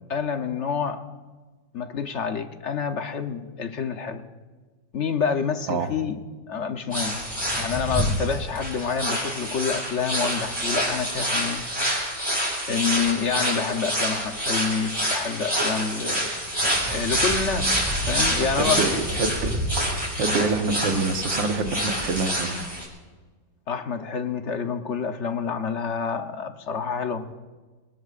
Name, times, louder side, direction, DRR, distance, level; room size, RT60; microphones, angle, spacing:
voice 1, 0.1-1.2 1.7-4.2 4.9-6.2 6.5-7.2 7.6-11.6 12.7-16.3 16.9-18.8 23.7-27.3, left 6 dB, 50° left, 7 dB, 0.9 m, -28 dB
sound 1, 6.9-22.8, equal, 10° right, 5.8 m, -27 dB
voice 2, 18.6-19.5 20.2-22.6, right 4 dB, 75° right, 5 dB, 1.9 m, -26 dB
27.0 x 19.0 x 2.5 m, 1.3 s
omnidirectional pair, 2.1 m